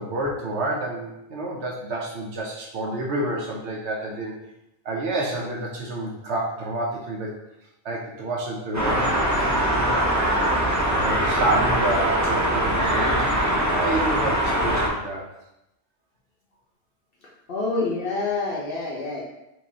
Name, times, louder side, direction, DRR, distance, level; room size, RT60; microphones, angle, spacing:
voice 1, 0.0-4.3 4.8-7.3 7.8-9.3 9.7-10.0 10.9-13.3 13.8-15.2, right 2 dB, 75° right, -1 dB, 1.0 m, -28 dB
sound 1, 8.7-14.9, right 1 dB, 15° right, 0.8 m, -22 dB
voice 2, 17.5-19.2, left 3 dB, 55° left, -4 dB, 1.0 m, -27 dB
4.8 x 3.8 x 2.7 m, 0.87 s
omnidirectional pair, 1.1 m